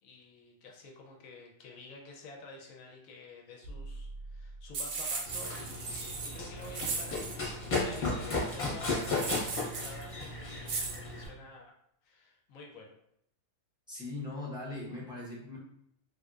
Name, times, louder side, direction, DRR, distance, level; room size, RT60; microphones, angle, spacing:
voice 1, 0.0-11.7 12.0-12.9, left 3 dB, 70° left, 1 dB, 0.9 m, -50 dB
sound 1, 3.6-5.5, right 2 dB, 85° right, 1.2 m, -45 dB
sound 2, 4.7-7.4 9.0-10.0 10.7-11.0, right 4 dB, 65° right, 0.9 m, -37 dB
Run, 5.3-11.3, left 2 dB, 35° left, 0.8 m, -35 dB
voice 2, 13.9-15.6, left 2 dB, 5° right, -7 dB, 0.4 m, -40 dB
3.3 x 2.6 x 2.3 m, 0.74 s
omnidirectional pair, 1.7 m